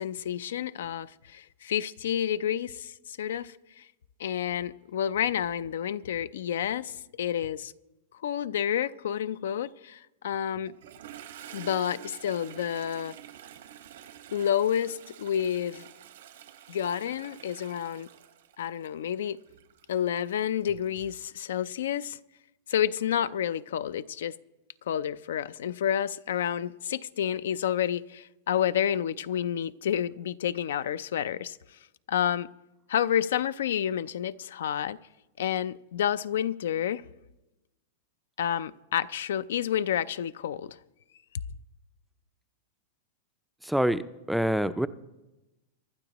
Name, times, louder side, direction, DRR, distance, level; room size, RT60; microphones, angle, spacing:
voice 1, 0.0-3.9 4.2-7.7 8.2-10.7 11.5-13.1 14.3-15.9 16.7-18.1 18.6-19.4 19.9-22.2 22.7-24.3 24.9-31.6 32.1-32.5 32.9-35.0 35.4-37.0 38.4-40.8, left 9 dB, 85° left, 0.4 m, -29 dB
Toilet flush, 10.7-21.2, right 11 dB, 90° right, 1.5 m, -49 dB
voice 2, 43.6-44.9, right 1 dB, ahead, 0.3 m, -26 dB
24.5 x 11.5 x 3.0 m
supercardioid pair, 155°, 0 cm